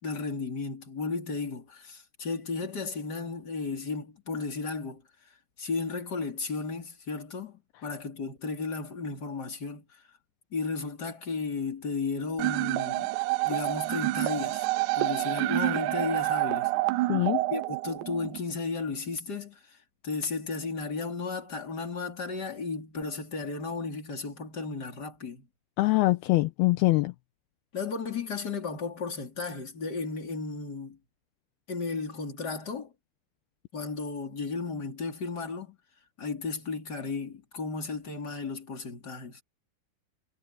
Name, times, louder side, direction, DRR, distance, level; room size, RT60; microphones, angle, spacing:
voice 1, 0.0-5.0 5.6-10.0 10.5-13.1 13.4-14.7 14.9-16.7 17.5-19.8 20.0-25.5 27.7-31.0 31.7-32.9 33.7-35.8 36.2-39.4, left 4 dB, 25° left, 3.8 m, -34 dB
sound 1, 12.4-18.4, right 19 dB, 85° right, 2.9 m, -28 dB
voice 2, 17.1-17.4 25.8-27.1, left 20 dB, 80° left, 2.4 m, -23 dB
omnidirectional pair, 5.1 m